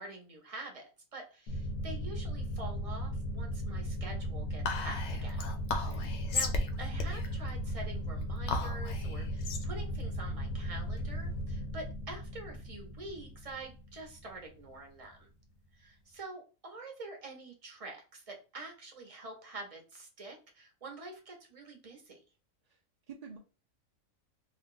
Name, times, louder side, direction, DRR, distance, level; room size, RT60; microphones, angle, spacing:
voice 1, 0.0-5.4 6.3-6.5 6.8-15.3 15.7-22.2, right 3 dB, 35° right, 2 dB, 0.7 m, -46 dB
sound 1, 1.5-14.7, equal, 85° left, 1.0 m, -37 dB
Whispering, 4.6-11.3, left 3 dB, 65° left, 0.8 m, -36 dB
voice 2, 5.7-6.1 22.6-22.8 23.1-23.4, right 5 dB, 70° right, 1 dB, 0.3 m, -49 dB
2.6 x 2.2 x 3.7 m, 0.34 s
omnidirectional pair, 1.4 m